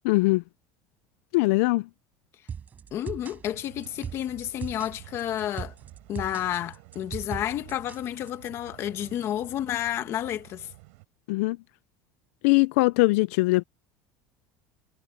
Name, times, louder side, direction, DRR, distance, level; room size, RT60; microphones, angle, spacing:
voice 1, 0.1-0.4 1.3-1.8 11.3-11.6 12.4-13.6, left 23 dB, 80° left, 0.4 m, -21 dB
sound 1, 2.5-8.5, right 7 dB, 20° right, 5.2 m, -39 dB
voice 2, 2.9-5.7 6.1-10.7, left 11 dB, 35° left, 1.5 m, -31 dB
sound 2, 3.4-11.0, right 27 dB, 85° right, 7.4 m, -50 dB
cardioid pair, 175°, 8 cm